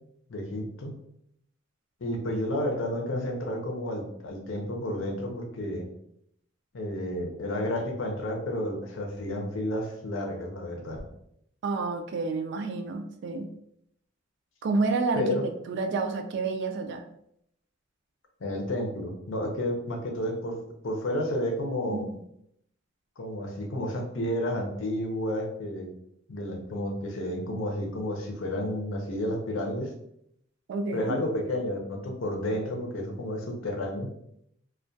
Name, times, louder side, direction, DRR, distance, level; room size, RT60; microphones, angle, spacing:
voice 1, 0.3-0.9 2.0-5.9 6.7-11.0 15.1-15.5 18.4-20.6 20.8-22.1 23.2-25.9 26.3-29.9 30.9-34.1, left 1 dB, 75° left, 1 dB, 0.6 m, -31 dB
voice 2, 11.6-13.5 14.6-15.2 15.7-17.0 21.9-22.1 30.7-31.1, right 3 dB, 60° right, 6 dB, 0.3 m, -29 dB
2.2 x 2.2 x 2.6 m, 0.74 s
head